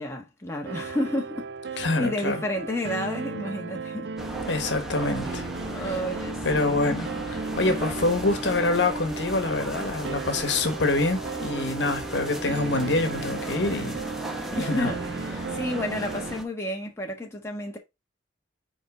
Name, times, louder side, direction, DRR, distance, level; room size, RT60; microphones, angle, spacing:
voice 1, 0.0-4.1 5.2-6.8 14.6-15.0 15.5-17.8, left 1 dB, 15° left, 1.4 m, -31 dB
sound 1, 0.6-16.4, right 4 dB, 65° right, 0.5 m, -36 dB
voice 2, 1.8-2.4 4.5-5.4 5.8-5.9 6.4-14.0 14.5-14.9, left 2 dB, 65° left, 1.3 m, -26 dB
sound 2, 4.2-16.4, right 1 dB, ahead, 0.8 m, -36 dB
5.5 x 4.6 x 4.8 m
head